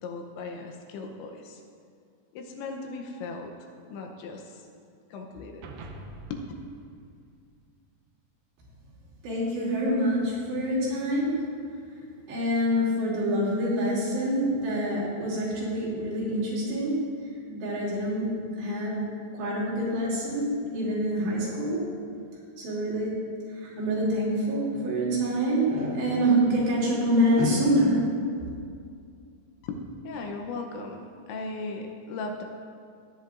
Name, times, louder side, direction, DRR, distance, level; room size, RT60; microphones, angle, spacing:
voice 1, 0.0-1.6 2.3-4.7 5.1-5.7 6.3-6.4 29.6-32.4, left 3 dB, 80° left, 2 dB, 3.0 m, -37 dB
sound 1, 5.6-8.1, right 2 dB, 85° right, 2.1 m, -45 dB
voice 2, 9.2-11.4 12.3-17.0 17.5-18.3 18.6-19.0 19.3-21.8 22.6-23.1 23.6-28.0, equal, 65° right, -7 dB, 4.9 m, -26 dB
17.5 x 10.5 x 2.5 m, 2.3 s
omnidirectional pair, 5.5 m